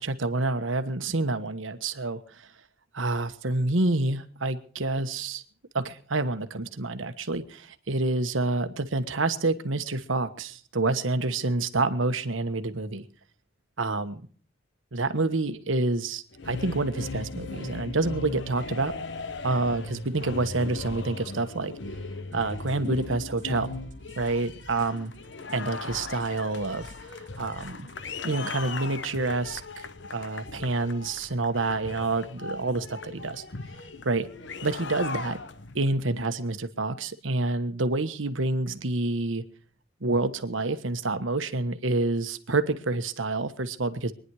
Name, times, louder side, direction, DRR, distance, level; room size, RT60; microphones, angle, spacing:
voice 1, 0.0-2.5 2.9-5.4 5.7-13.0 13.8-14.3 14.9-18.9 19.4-21.7 22.3-23.7 24.2-25.1 25.5-27.9 28.2-29.6 30.1-33.4 34.0-34.3 34.6-35.4 35.7-39.4 40.0-44.1, right 2 dB, 85° right, 10 dB, 1.3 m, -28 dB
sound 1, 16.3-35.9, left 3 dB, 65° left, 1.0 m, -38 dB
sound 2, 22.3-27.9, right 1 dB, 40° right, 2.4 m, -50 dB
24.0 x 10.5 x 4.8 m, 0.43 s
head